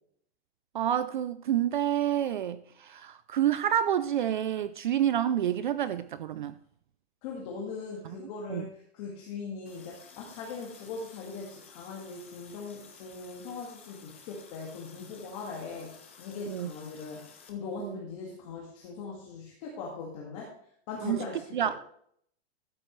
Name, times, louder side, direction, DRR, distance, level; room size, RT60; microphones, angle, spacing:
voice 1, 0.7-6.5 8.1-8.2 8.5-8.7 16.5-16.7 17.8-18.0 21.0-21.2 21.5-21.9, right 10 dB, 45° right, 0.5 m, -28 dB
voice 2, 7.2-15.9 16.2-17.2 17.5-20.5 20.9-21.6, left 4 dB, 30° left, 1.9 m, -40 dB
Water tap faucet, 9.7-17.5, left 6 dB, 10° left, 0.4 m, -54 dB
13.0 x 9.2 x 3.2 m
supercardioid pair, 180°, 34 cm